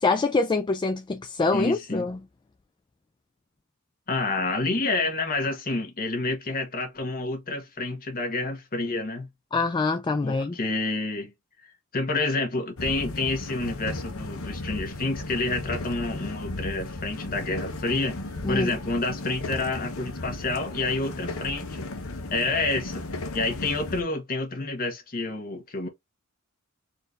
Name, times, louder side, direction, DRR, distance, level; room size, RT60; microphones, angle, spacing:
voice 1, 0.0-2.2 9.5-10.6 18.4-18.7, left 3 dB, 20° left, 0.3 m, -25 dB
voice 2, 1.5-2.1 4.1-9.3 10.2-11.3 11.9-18.2 18.5-21.8 22.3-23.0 23.3-25.9, left 2 dB, 40° left, 1.3 m, -28 dB
sound 1, 12.8-24.0, left 2 dB, 70° left, 0.9 m, -35 dB
4.2 x 2.7 x 3.2 m
head